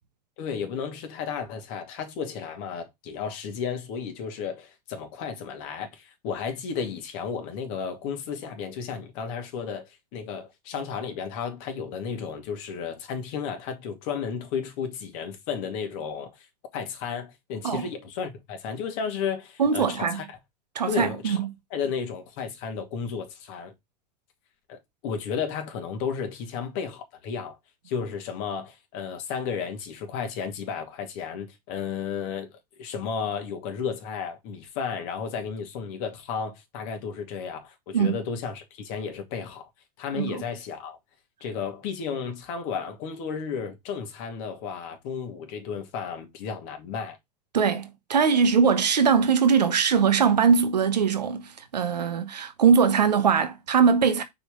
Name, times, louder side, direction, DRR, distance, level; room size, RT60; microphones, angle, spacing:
voice 1, 0.4-16.5 16.7-20.4 20.9-21.4 21.7-23.7 24.7-27.6 27.8-39.7 40.0-41.0 41.4-47.2, left 6 dB, 55° left, 2.5 m, -33 dB
voice 2, 19.6-20.2 20.7-21.5 37.9-38.2 40.1-40.4 47.5-54.2, right 6 dB, 85° right, 1.1 m, -21 dB
5.6 x 4.9 x 3.7 m
hypercardioid pair, 95°, 21 cm